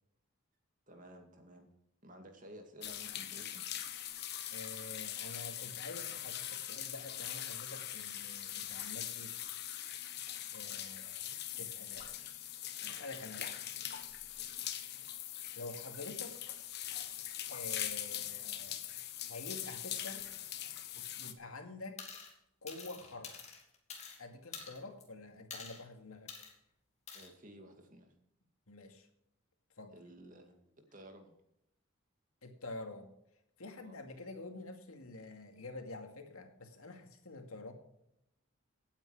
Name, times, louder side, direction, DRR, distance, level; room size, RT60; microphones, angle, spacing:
voice 1, 0.9-1.7 2.0-3.6 12.8-13.0 27.1-28.1 29.9-30.6 30.9-31.3 33.8-34.0, right 1 dB, 35° right, 4 dB, 2.3 m, -54 dB
sound 1, 2.8-21.3, left 11 dB, 50° left, 1.2 m, -42 dB
voice 2, 4.5-9.3 10.5-12.1 12.9-13.5 15.6-16.6 17.5-18.9 19.3-20.3 20.9-22.0 22.6-23.4 24.2-26.3 28.7-29.1 29.8-29.9 32.4-33.1 33.6-37.7, left 2 dB, 85° left, 5 dB, 2.3 m, -48 dB
sound 2, 22.0-22.3 22.7-24.2 24.5-25.0 25.5-25.8 26.3-26.5 27.1-27.3, left 5 dB, 30° left, 2.7 m, -47 dB
17.0 x 9.0 x 5.0 m, 0.81 s
head